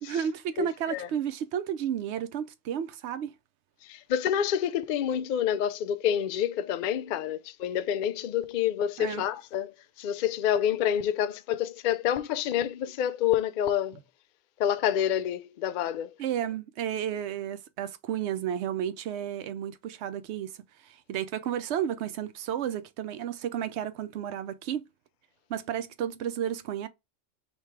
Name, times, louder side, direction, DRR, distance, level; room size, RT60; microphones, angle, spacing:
voice 1, 0.0-3.3 9.0-9.2 16.2-20.5 20.8-24.8 25.5-26.9, right 9 dB, 70° right, 0.8 m, -32 dB
voice 2, 0.6-1.1 3.8-14.0 14.6-16.1, left 10 dB, 65° left, 0.5 m, -28 dB
3.4 x 3.2 x 4.6 m
omnidirectional pair, 1.3 m